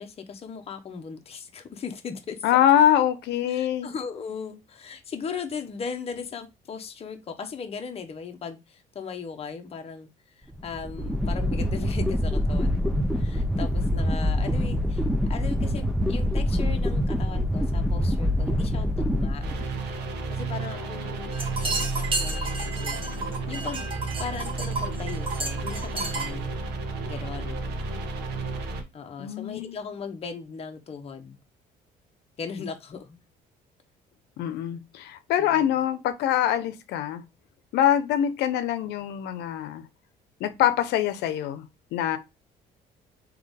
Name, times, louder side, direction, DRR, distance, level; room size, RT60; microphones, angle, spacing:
voice 1, 0.0-2.4 3.5-10.1 10.4-19.4 20.3-21.3 21.6-23.8 24.2-26.5 27.1-27.6 28.9-31.4 32.4-33.2 35.4-35.8, left 6 dB, 35° left, 0.9 m, -38 dB
voice 2, 2.4-3.9 29.2-29.8 34.4-37.2 37.7-39.8 40.4-41.6 41.9-42.2, left 11 dB, 85° left, 0.8 m, -24 dB
sound 1, 10.5-20.0, left 1 dB, ahead, 0.6 m, -25 dB
sound 2, 19.4-28.8, right 3 dB, 80° right, 1.0 m, -32 dB
sound 3, 21.3-26.3, right 3 dB, 30° right, 1.2 m, -32 dB
3.9 x 3.1 x 3.5 m
cardioid pair, 110°, 17 cm